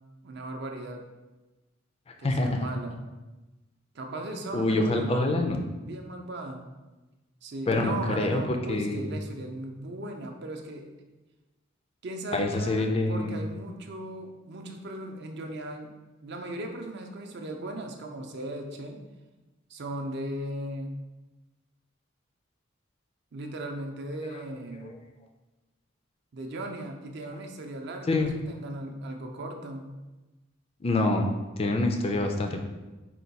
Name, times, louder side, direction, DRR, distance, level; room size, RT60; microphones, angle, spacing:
voice 1, 0.2-1.0 2.2-3.0 3.9-5.5 5.8-6.6 7.4-10.9 12.0-15.9 16.2-19.0 19.7-21.0 23.3-25.0 26.3-29.9, right 1 dB, 55° right, 3 dB, 0.5 m, -37 dB
voice 2, 2.2-2.7 4.5-5.6 7.7-9.1 12.3-13.4 24.3-24.4 24.8-24.9 28.1-28.3 30.8-32.6, left 2 dB, 30° left, 4 dB, 0.3 m, -26 dB
4.4 x 2.3 x 4.0 m, 1.1 s
head